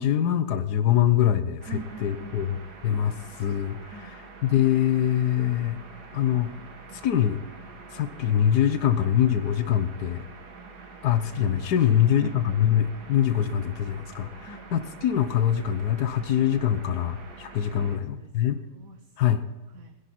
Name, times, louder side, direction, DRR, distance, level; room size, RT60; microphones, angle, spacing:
voice 1, 0.0-2.6 2.8-4.1 4.4-5.8 6.1-6.5 7.0-7.4 7.9-10.2 11.0-18.6 19.2-19.4, left 10 dB, 85° left, 10 dB, 1.5 m, -24 dB
sound 1, 1.6-18.0, right 4 dB, 85° right, 2.2 m, -46 dB
voice 2, 1.7-2.5 3.8-4.1 11.8-12.9 14.4-14.7 17.6-20.0, right 5 dB, 60° right, 6 dB, 1.4 m, -45 dB
21.0 x 11.0 x 4.2 m, 1.2 s
omnidirectional pair, 1.7 m